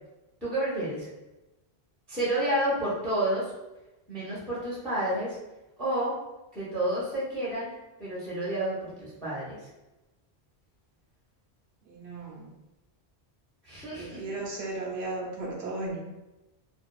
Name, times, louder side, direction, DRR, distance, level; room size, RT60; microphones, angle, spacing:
voice 1, 0.4-1.1 2.1-3.5 4.1-5.4 5.8-6.2 6.5-7.7 8.0-9.6 13.6-14.2, right 1 dB, ahead, -8 dB, 0.7 m, -30 dB
voice 2, 11.8-12.5 13.9-16.0, right 2 dB, 80° right, -3 dB, 0.9 m, -35 dB
2.6 x 2.4 x 2.3 m, 1.0 s
omnidirectional pair, 1.1 m